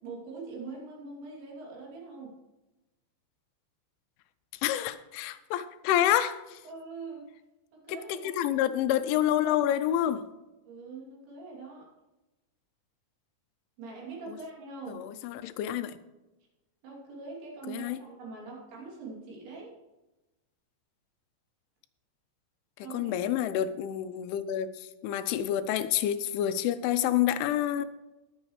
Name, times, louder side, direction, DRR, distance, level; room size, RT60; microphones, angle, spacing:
voice 1, 0.0-2.4 6.6-7.3 7.7-8.3 10.7-11.9 13.8-15.1 16.8-19.7 22.8-23.3, right 4 dB, 70° right, 5.1 m, -43 dB
voice 2, 4.6-6.6 8.4-10.2 14.9-15.9 17.7-18.0 22.9-27.9, left 11 dB, 90° left, 3.1 m, -28 dB
20.5 x 7.1 x 3.2 m
omnidirectional pair, 5.4 m